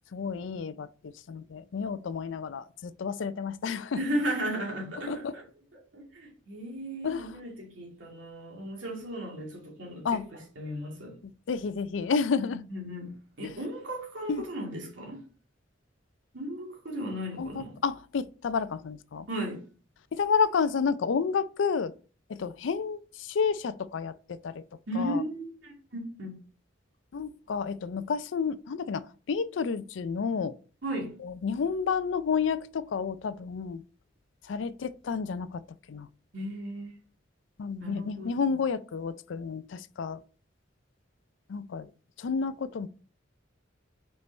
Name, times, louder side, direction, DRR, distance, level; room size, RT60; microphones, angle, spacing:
voice 1, 0.1-4.0 5.1-5.3 7.0-7.4 10.0-10.3 11.2-12.6 13.4-13.5 14.3-14.4 17.4-19.3 20.1-21.9 22.3-24.6 25.0-25.2 27.1-30.5 31.2-33.8 34.5-35.6 35.9-36.1 37.6-40.2 41.5-41.9 42.2-42.9, left 5 dB, 80° left, 0.4 m, -30 dB
voice 2, 3.9-5.4 5.9-11.2 12.7-13.1 13.4-15.2 16.3-17.7 19.3-19.6 24.9-26.3 30.8-31.1 36.3-36.9 37.8-38.5, right 1 dB, 85° right, 2.5 m, -35 dB
5.3 x 4.6 x 4.1 m
head